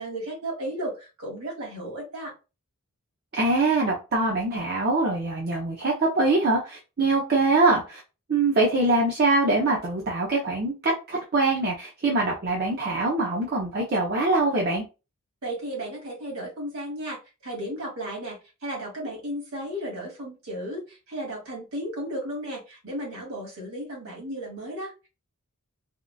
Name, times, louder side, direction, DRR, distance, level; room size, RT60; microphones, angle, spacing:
voice 1, 0.0-2.3 15.4-25.1, right 1 dB, 70° right, -1 dB, 1.8 m, -34 dB
voice 2, 3.3-8.0 8.3-14.8, right 2 dB, 45° right, -2 dB, 0.7 m, -23 dB
3.6 x 2.5 x 2.3 m, 0.29 s
head